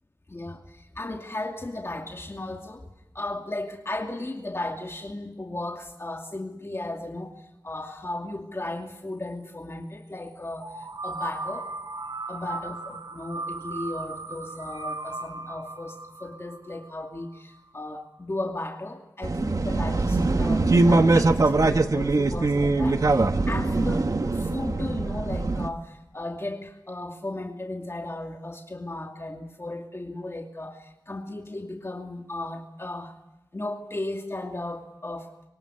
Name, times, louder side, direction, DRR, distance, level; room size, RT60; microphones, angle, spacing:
voice 1, 0.3-0.6 1.0-2.8 3.1-7.3 7.6-10.7 11.0-11.7 12.3-16.0 16.2-33.1 33.5-35.3, left 2 dB, 35° left, 2 dB, 2.6 m, -35 dB
sound 1, 10.6-17.4, right 3 dB, 80° right, 4.5 m, -37 dB
sound 2, 19.2-25.7, right 3 dB, 55° right, 1.3 m, -22 dB
25.0 x 24.0 x 9.9 m, 0.92 s
wide cardioid pair, 75°, 7 cm